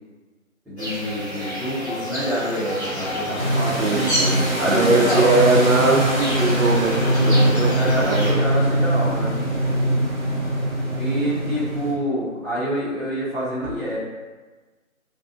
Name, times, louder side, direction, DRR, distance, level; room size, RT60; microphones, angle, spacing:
voice 1, 0.6-4.1 4.6-5.5 7.7-9.4 10.9-14.0, equal, ahead, -19 dB, 0.6 m, -27 dB
sound 1, 0.8-8.3, equal, 50° left, 1.4 m, -29 dB
sound 2, 2.8-8.9, left 1 dB, 65° left, 0.8 m, -34 dB
sound 3, 3.4-11.9, right 1 dB, 45° right, 0.8 m, -22 dB
voice 2, 3.8-6.9 7.3-8.5, right 3 dB, 80° right, 2 dB, 0.6 m, -21 dB
3.4 x 2.2 x 2.5 m, 1.3 s
figure-of-eight pair, 175°, 42 cm